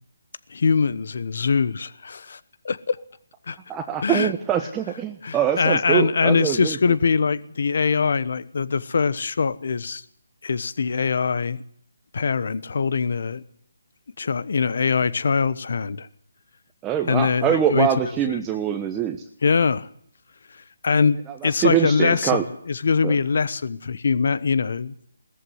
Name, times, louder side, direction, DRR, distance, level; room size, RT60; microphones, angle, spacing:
voice 1, 0.5-2.4 2.6-3.0 3.5-3.6 4.0-4.3 5.2-10.0 10.4-11.6 12.1-13.4 14.2-16.1 17.1-17.9 19.4-19.9 20.8-21.2 21.4-24.9, left 5 dB, 60° left, 1.1 m, -22 dB
voice 2, 3.7-6.8 16.8-19.2 21.4-22.4 23.0-23.1, right 9 dB, 15° right, 1.1 m, -23 dB
19.0 x 14.0 x 9.5 m
figure-of-eight pair, 155°, 0 cm